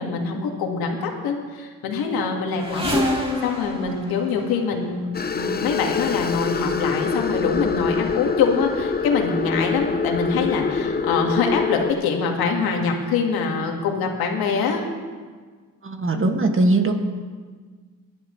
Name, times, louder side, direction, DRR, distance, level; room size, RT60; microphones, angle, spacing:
voice 1, 0.0-5.0 5.3-14.9, left 5 dB, 90° left, 2 dB, 1.9 m, -24 dB
sound 1, 2.6-5.1 6.0-6.3 7.0-7.1 7.3-8.2 8.5-9.1 9.8-9.9 10.2-10.3, left 1 dB, 15° right, 2.9 m, -29 dB
sound 2, 5.1-11.9, left 5 dB, 25° left, 0.8 m, -25 dB
voice 2, 15.8-16.9, right 2 dB, 35° right, 4 dB, 1.9 m, -20 dB
21.0 x 11.5 x 3.2 m, 1.5 s
cardioid pair, 70°, 35 cm